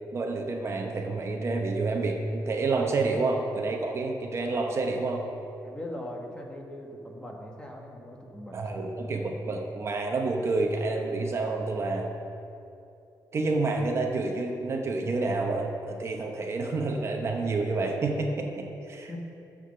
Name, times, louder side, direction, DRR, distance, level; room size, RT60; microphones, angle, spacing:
voice 1, 0.1-5.2 8.5-12.1 13.3-19.2, right 3 dB, 40° right, 2 dB, 0.9 m, -29 dB
voice 2, 5.6-8.8 19.1-19.2, left 1 dB, 15° left, 0 dB, 1.3 m, -40 dB
9.9 x 7.6 x 6.6 m, 2.7 s
wide cardioid pair, 165°, 7 cm